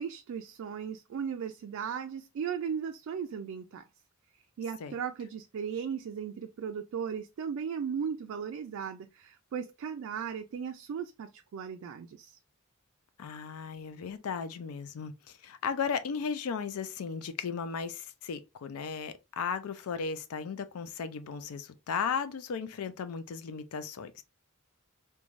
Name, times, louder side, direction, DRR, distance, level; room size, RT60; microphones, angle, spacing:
voice 1, 0.0-3.8 4.6-12.4, right 7 dB, 70° right, 0.3 m, -37 dB
voice 2, 13.2-24.2, left 6 dB, 85° left, 0.4 m, -36 dB
3.1 x 2.2 x 2.5 m
head